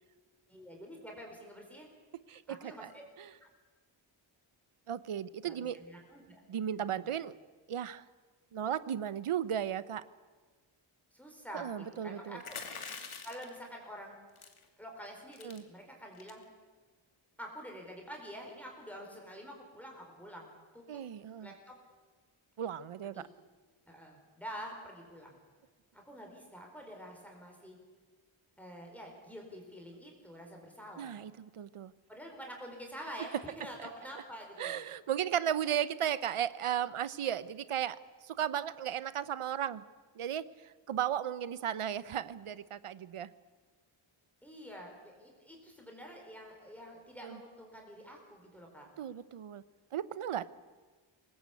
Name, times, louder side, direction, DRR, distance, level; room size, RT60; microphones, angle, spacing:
voice 1, 0.5-1.9 2.5-3.0 3.4-3.5 5.4-6.4 6.9-7.1 11.1-12.6 13.2-14.2 14.8-16.4 17.4-20.5 20.7-21.0 21.4-21.8 23.0-23.3 23.9-25.4 25.9-27.8 28.6-31.2 32.1-34.8 44.4-48.9, equal, 5° left, 0 dB, 4.5 m, -47 dB
voice 2, 2.3-2.9 3.2-3.3 4.9-5.8 6.5-7.4 7.7-8.0 8.5-10.0 11.5-12.4 15.4-15.6 20.9-21.5 22.6-23.2 31.0-31.9 34.6-38.0 38.2-39.8 40.2-40.5 40.9-43.3 47.2-47.4 49.0-49.6 49.9-50.4, right 9 dB, 90° right, 16 dB, 0.9 m, -35 dB
sound 1, 12.4-13.6 14.4-14.6 15.0-15.1 15.3-15.6 16.1-16.4, left 5 dB, 80° left, 2.6 m, -44 dB
24.0 x 19.5 x 8.4 m, 1.4 s
wide cardioid pair, 140°, 49 cm